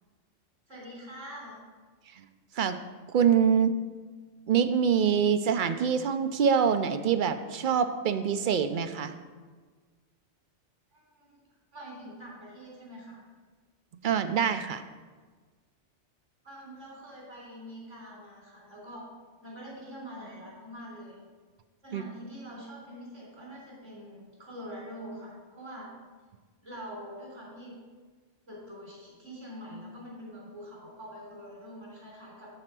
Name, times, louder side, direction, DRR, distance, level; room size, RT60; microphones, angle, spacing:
voice 1, 0.7-1.6 10.9-11.3 11.7-13.2 16.4-19.1 19.4-21.2 21.8-25.9 26.6-27.8 28.5-32.5, equal, 85° right, -5 dB, 4.1 m, -44 dB
voice 2, 3.1-3.7 4.5-9.3 14.0-14.8 21.9-22.0, right 7 dB, 55° right, 10 dB, 0.6 m, -25 dB
12.5 x 4.4 x 6.1 m, 1.4 s
omnidirectional pair, 1.2 m